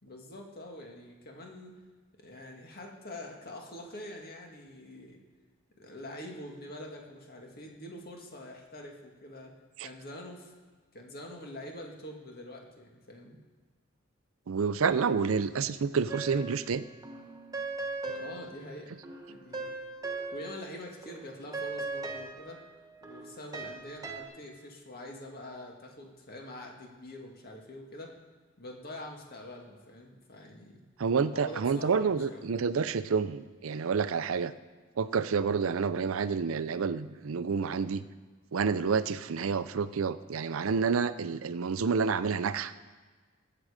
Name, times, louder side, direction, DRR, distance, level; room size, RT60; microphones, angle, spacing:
voice 1, 0.0-1.8 2.2-5.2 5.8-10.5 10.9-13.4 18.2-18.9 19.3-19.6 20.3-22.6 23.0-28.2 28.6-30.8 31.3-32.5, left 1 dB, 50° left, 1 dB, 1.9 m, -45 dB
voice 2, 14.5-16.8 18.1-18.2 31.0-34.5 35.0-38.0 38.5-42.7, right 5 dB, 80° right, 14 dB, 0.5 m, -29 dB
sound 1, 16.1-16.8 17.0-20.8 21.0-24.2, right 3 dB, 20° right, 1.3 m, -39 dB
20.0 x 7.8 x 5.0 m, 1.4 s
head